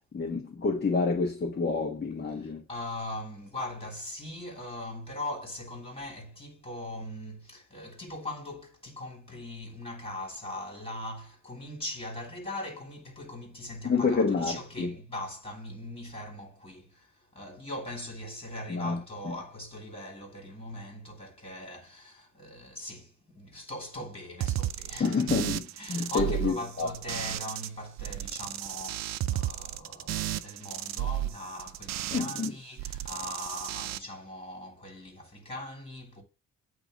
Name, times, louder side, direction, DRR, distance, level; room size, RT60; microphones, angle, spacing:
voice 1, 0.1-2.6 13.8-14.9 18.7-19.0 19.2-19.3 25.0-25.6 25.9-26.9 32.1-32.5, left 4 dB, 35° left, 1.4 m, -28 dB
voice 2, 2.4-25.3 25.8-36.2, left 1 dB, 20° left, 3.0 m, -40 dB
sound 1, 24.4-27.7 28.0-32.5 32.8-34.0, right 13 dB, 60° right, 0.5 m, -33 dB
8.8 x 3.0 x 3.8 m
cardioid pair, 90°, 30 cm